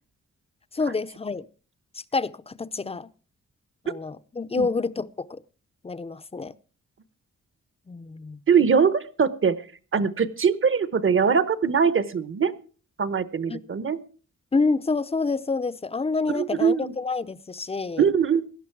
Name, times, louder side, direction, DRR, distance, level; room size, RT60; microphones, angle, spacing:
voice 1, 0.7-1.5 1.9-3.1 3.8-5.4 5.8-6.5 7.9-8.4 13.5-13.6 14.5-18.1, left 4 dB, 20° left, 0.6 m, -28 dB
voice 2, 8.5-9.6 9.9-12.5 13.0-14.0 16.3-16.9 18.0-18.4, right 6 dB, 45° right, 1.0 m, -22 dB
17.0 x 11.5 x 4.7 m
wide cardioid pair, 125°, 30 cm